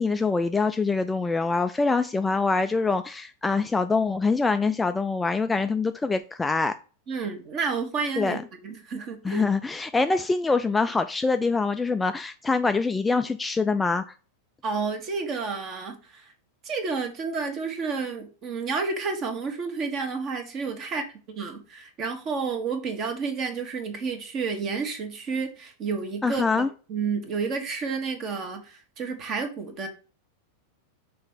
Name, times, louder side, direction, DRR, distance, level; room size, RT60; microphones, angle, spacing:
voice 1, 0.0-6.7 8.2-8.4 9.2-14.1 26.2-26.7, left 4 dB, 10° left, 0.3 m, -24 dB
voice 2, 7.1-9.4 14.6-16.3 16.6-29.9, right 5 dB, 35° right, 1.4 m, -30 dB
5.7 x 3.4 x 5.6 m
figure-of-eight pair, 90°, 0 cm